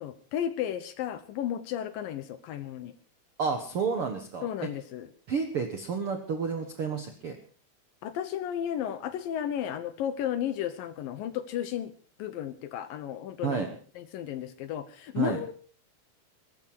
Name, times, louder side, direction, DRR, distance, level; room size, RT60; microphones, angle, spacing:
voice 1, 0.0-2.9 4.4-5.1 8.0-11.9 12.2-13.7 14.0-15.5, left 10 dB, 70° left, 12 dB, 2.4 m, -33 dB
voice 2, 3.4-4.5 5.3-7.4 13.4-13.7 15.1-15.4, right 5 dB, 65° right, 5 dB, 1.4 m, -30 dB
22.0 x 11.5 x 4.7 m, 0.42 s
omnidirectional pair, 4.6 m